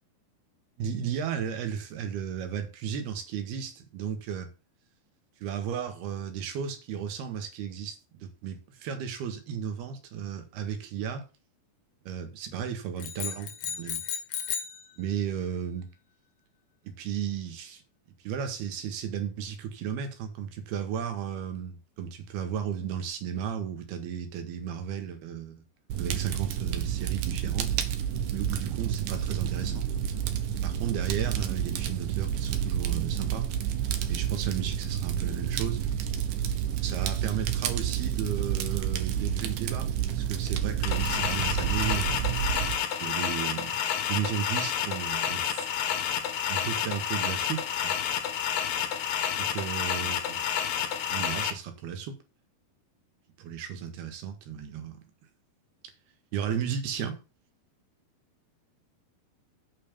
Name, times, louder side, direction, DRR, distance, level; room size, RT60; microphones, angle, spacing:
voice 1, 0.8-4.5 5.4-11.3 12.1-14.0 15.0-15.9 16.9-17.8 18.2-25.6 26.0-27.7 28.3-29.9 30.6-33.5 34.1-35.8 36.8-42.2 43.0-47.9 49.4-50.4 51.1-52.2 53.4-55.0 56.3-57.2, right 8 dB, 85° right, 3.7 m, -34 dB
sound 1, 13.0-14.8, left 8 dB, 85° left, 3.7 m, -34 dB
Fire, 25.9-42.7, right 10 dB, 65° right, 2.5 m, -30 dB
sound 2, 40.8-51.5, left 9 dB, 70° left, 2.9 m, -30 dB
8.2 x 6.0 x 6.8 m
omnidirectional pair, 4.4 m